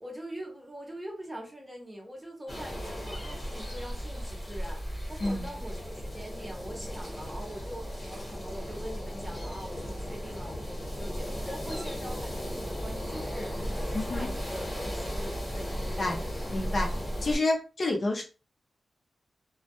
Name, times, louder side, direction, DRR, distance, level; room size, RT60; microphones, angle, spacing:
voice 1, 0.0-16.2, equal, 10° right, 1 dB, 0.6 m, -43 dB
sound 1, 2.5-17.4, equal, 20° left, 0.9 m, -35 dB
voice 2, 5.2-5.5 13.9-14.3 16.0-16.2 16.5-16.9 17.2-18.2, left 2 dB, 40° left, 0 dB, 0.5 m, -29 dB
2.1 x 2.1 x 2.8 m, 0.33 s
wide cardioid pair, 170°, 0 cm